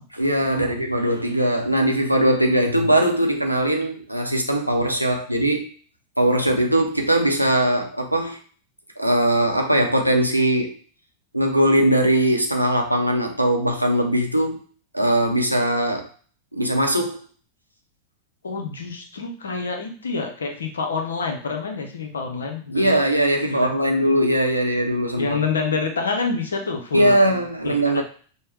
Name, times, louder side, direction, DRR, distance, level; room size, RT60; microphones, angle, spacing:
voice 1, 0.1-5.7 6.2-8.4 9.0-10.8 11.3-14.7 14.9-16.1 16.5-17.2 22.7-25.4 26.9-28.0, right 1 dB, 90° right, 2 dB, 0.6 m, -20 dB
voice 2, 18.4-23.0 23.4-23.8 25.2-27.2 27.6-28.0, left 4 dB, 70° left, 4 dB, 0.7 m, -27 dB
5.5 x 2.1 x 3.2 m, 0.43 s
figure-of-eight pair, 90°, 0 cm